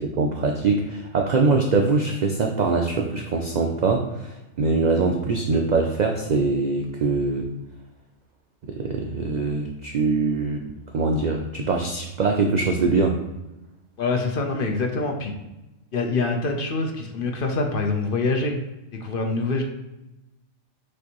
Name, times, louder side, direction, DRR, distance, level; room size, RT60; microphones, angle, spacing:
voice 1, 0.0-7.5 8.7-10.6 10.9-13.2, right 3 dB, 85° right, 2 dB, 0.3 m, -23 dB
voice 2, 14.0-15.3 15.9-18.6 19.0-19.6, left 3 dB, 55° left, 3 dB, 0.7 m, -25 dB
6.4 x 2.6 x 2.9 m, 0.98 s
omnidirectional pair, 1.3 m